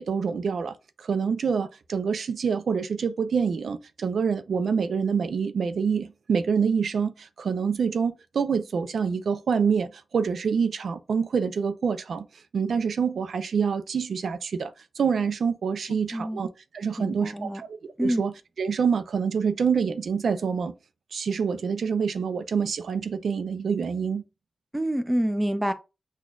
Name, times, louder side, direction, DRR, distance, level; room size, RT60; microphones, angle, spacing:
voice 1, 0.0-12.3 12.5-16.5 16.7-20.7 21.1-24.2, right 6 dB, 80° right, 0.4 m, -26 dB
voice 2, 16.1-16.4 17.0-17.6 18.0-18.2 24.7-25.7, equal, 10° right, 0.5 m, -27 dB
6.1 x 2.3 x 2.4 m
wide cardioid pair, 95°, 0 cm